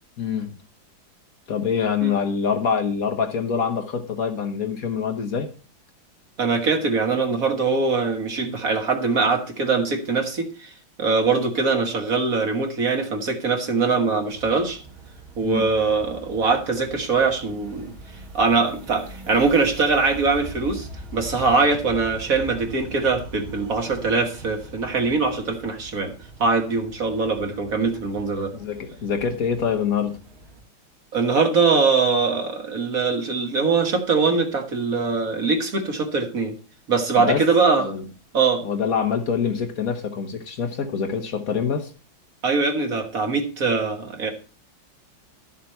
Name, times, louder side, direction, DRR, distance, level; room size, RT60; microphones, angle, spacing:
voice 1, 0.2-0.5 1.5-5.5 15.4-15.6 28.5-30.2 37.2-37.4 37.8-38.0 38.6-41.9, left 6 dB, 50° left, 5 dB, 1.4 m, -25 dB
voice 2, 6.4-10.7 11.0-14.8 15.4-17.9 18.3-26.1 26.4-28.5 31.1-36.5 36.9-37.9 38.3-38.6 42.4-44.3, right 4 dB, 45° right, 4 dB, 1.8 m, -22 dB
sound 1, 14.3-30.6, right 3 dB, 80° right, 2.4 m, -42 dB
12.5 x 6.9 x 4.3 m, 0.37 s
omnidirectional pair, 2.2 m